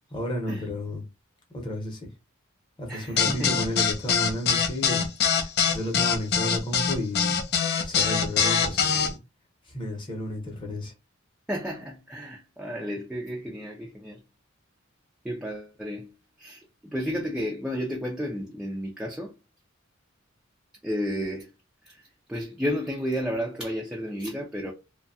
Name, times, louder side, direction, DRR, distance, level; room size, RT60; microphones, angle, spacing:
voice 1, 0.1-1.0 1.5-2.1 2.8-5.1 5.4-7.5 7.8-9.2 9.7-10.9, left 1 dB, 25° left, 0.9 m, -32 dB
voice 2, 2.9-3.6 11.5-14.2 15.2-16.1 16.4-16.6 16.9-19.3 20.8-21.5 21.8-22.0 22.3-24.7, equal, 5° right, 0.4 m, -32 dB
sound 1, 3.2-9.1, left 6 dB, 50° left, 0.5 m, -23 dB
2.7 x 2.2 x 2.6 m
head